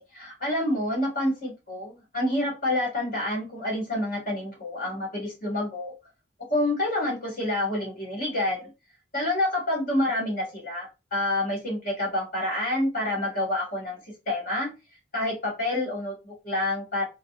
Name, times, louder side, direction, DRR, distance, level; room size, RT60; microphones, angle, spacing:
voice 1, 0.0-5.9 6.5-8.7 9.1-14.0 14.3-14.7 15.1-17.0, left 1 dB, 45° left, -2 dB, 1.6 m, -28 dB
3.9 x 2.0 x 2.4 m, 0.27 s
head